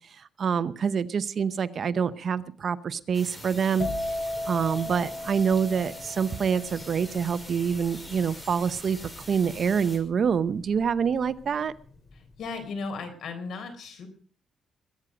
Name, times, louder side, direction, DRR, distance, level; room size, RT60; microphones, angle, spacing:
voice 1, 0.1-3.9 4.4-9.0 9.3-11.7, right 6 dB, 45° right, 13 dB, 0.8 m, -26 dB
sound 1, 3.1-10.0, left 1 dB, 15° left, 4.8 m, -44 dB
sound 2, 3.8-11.4 11.6-12.1, left 1 dB, 35° left, 2.8 m, -36 dB
voice 2, 12.1-14.1, left 4 dB, 70° left, 6 dB, 4.1 m, -36 dB
22.0 x 9.3 x 5.0 m, 0.43 s
cardioid pair, 135°, 0 cm